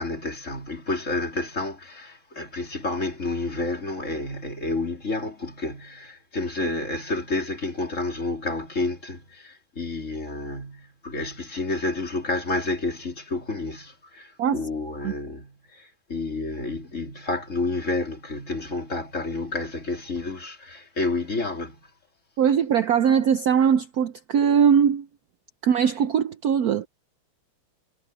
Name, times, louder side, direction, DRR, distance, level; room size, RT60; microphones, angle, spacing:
voice 1, 0.0-21.8, left 2 dB, 35° left, 3.5 m, -30 dB
voice 2, 22.4-25.1 25.6-26.9, right 7 dB, 65° right, 1.0 m, -21 dB
omnidirectional pair, 2.2 m